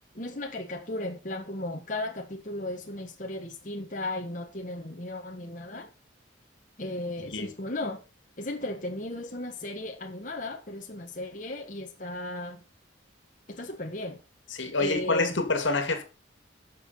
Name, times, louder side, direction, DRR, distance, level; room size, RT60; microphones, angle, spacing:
voice 1, 0.1-5.9 6.8-8.0 8.4-12.6 13.5-14.2 14.8-15.4, left 1 dB, 40° left, 1.5 m, -35 dB
voice 2, 14.5-16.0, left 3 dB, 75° left, 2.2 m, -27 dB
11.0 x 6.7 x 5.7 m
head